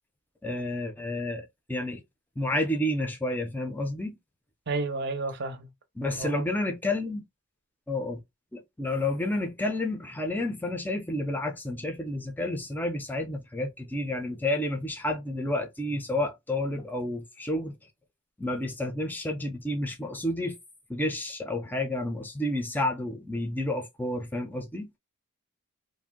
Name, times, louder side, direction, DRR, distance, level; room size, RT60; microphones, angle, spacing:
voice 1, 0.4-2.0 2.4-4.2 6.0-7.2 7.9-8.2 8.5-17.7 18.4-20.6 20.9-24.9, left 1 dB, 10° left, 0.5 m, -30 dB
voice 2, 4.7-5.7 6.2-6.4, right 3 dB, 50° right, 0.6 m, -31 dB
2.6 x 2.1 x 3.5 m
head